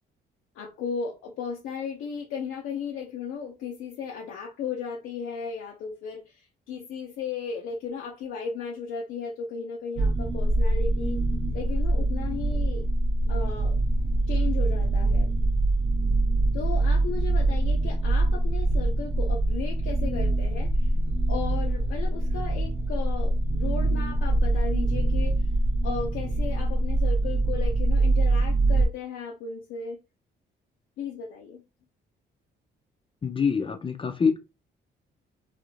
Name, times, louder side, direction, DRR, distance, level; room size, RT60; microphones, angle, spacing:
voice 1, 0.5-11.2 11.5-12.8 13.3-13.8 14.3-15.3 16.5-20.9 21.3-25.4 25.8-30.0 31.0-31.6, left 6 dB, 85° left, 0.6 m, -35 dB
sound 1, 10.0-28.9, right 2 dB, 30° right, 0.5 m, -24 dB
voice 2, 33.2-34.4, left 5 dB, 25° left, 0.4 m, -25 dB
2.4 x 2.0 x 3.0 m
cardioid pair, 90°, 20 cm